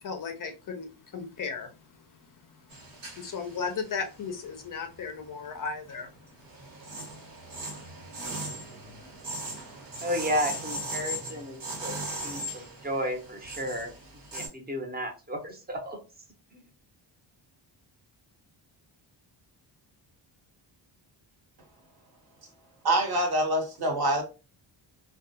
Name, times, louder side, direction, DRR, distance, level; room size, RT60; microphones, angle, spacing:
voice 1, 0.0-1.8 2.5-6.1 8.1-8.3, left 5 dB, 45° left, 0.4 m, -36 dB
sound 1, 2.7-5.1 5.5-14.5, right 1 dB, 75° right, 1.2 m, -39 dB
voice 2, 10.0-12.0 12.2-13.9 14.3-16.0 16.5-16.7, equal, 20° right, 0.6 m, -33 dB
voice 3, 22.8-24.2, right 1 dB, 50° right, 0.9 m, -25 dB
2.3 x 2.2 x 2.7 m
wide cardioid pair, 130°, 47 cm